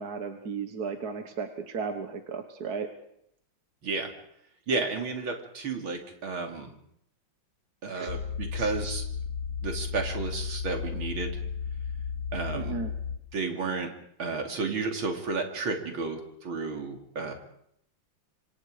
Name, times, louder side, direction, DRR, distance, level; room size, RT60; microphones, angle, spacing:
voice 1, 0.0-2.9 7.9-8.1 8.6-8.7 12.5-12.9, right 5 dB, 55° right, 7 dB, 1.8 m, -35 dB
voice 2, 4.7-6.7 7.8-9.0 9.6-11.4 12.3-12.8 13.3-13.9 14.2-17.3, right 4 dB, 85° right, 4 dB, 3.6 m, -32 dB
sound 1, 8.1-13.2, left 6 dB, 55° left, 1.6 m, -34 dB
26.0 x 25.5 x 5.0 m, 0.72 s
omnidirectional pair, 2.2 m